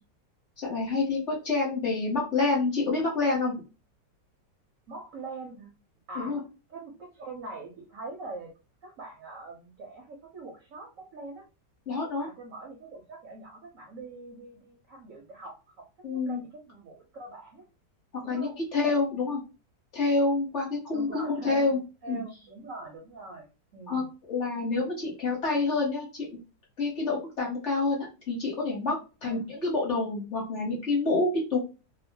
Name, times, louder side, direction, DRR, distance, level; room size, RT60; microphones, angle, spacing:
voice 1, 0.6-3.6 6.2-6.4 11.9-12.3 16.0-16.4 18.3-19.4 19.9-21.8 22.1-22.2 23.9-26.2 26.8-31.6, left 3 dB, 45° left, -3 dB, 1.1 m, -28 dB
voice 2, 4.9-5.7 6.1-6.4 6.7-8.5 8.8-11.4 12.2-15.8 16.1-17.7 18.2-18.6 20.9-24.1 29.2-29.5, right 3 dB, 65° right, 0 dB, 0.8 m, -43 dB
2.9 x 2.0 x 2.7 m, 0.31 s
omnidirectional pair, 1.9 m